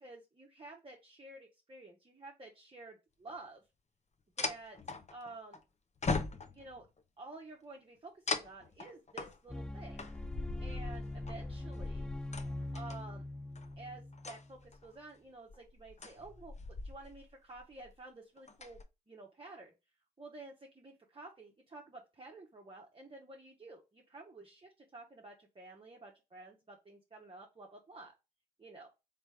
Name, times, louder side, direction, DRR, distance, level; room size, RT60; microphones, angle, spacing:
voice 1, 0.0-3.6 4.4-4.8 5.1-5.6 6.5-6.9 7.2-10.1 10.6-12.1 12.7-13.3 13.8-18.8 19.1-19.7 20.2-28.1 28.6-28.9, right 2 dB, 25° right, 0 dB, 1.0 m, -51 dB
sound 1, 3.3-3.4 4.4-5.6 6.0-6.8 8.3-13.0 13.6-13.8 14.1-14.9 15.5-17.3 17.6-17.9 18.4-18.8, left 3 dB, 35° left, 0.8 m, -40 dB
sound 2, 9.5-14.8, left 1 dB, 5° left, 0.3 m, -43 dB
3.3 x 3.3 x 3.3 m, 0.26 s
hypercardioid pair, 45°, 21 cm